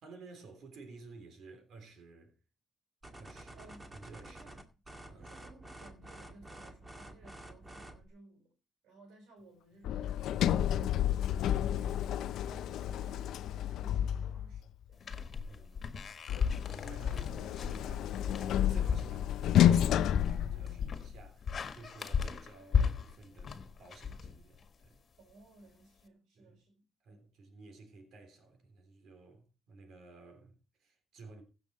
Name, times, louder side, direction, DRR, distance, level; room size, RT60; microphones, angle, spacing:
voice 1, 0.0-2.4 3.2-4.6 5.1-5.3 12.5-12.6 15.3-25.0 26.4-26.6 27.0-31.4, right 3 dB, 70° right, 3.7 m, -54 dB
sound 1, 3.0-8.1, right 1 dB, 20° right, 2.2 m, -50 dB
voice 2, 3.5-4.0 4.3-4.6 5.2-8.5 8.8-15.1 25.2-27.2, right 2 dB, 90° right, 5.0 m, -59 dB
Sliding door, 9.8-14.7 16.3-21.2, left 11 dB, 80° left, 0.6 m, -30 dB
sound 2, 15.0-24.9, left 6 dB, 50° left, 1.7 m, -36 dB
15.5 x 7.0 x 4.4 m
cardioid pair, 90°, 0 cm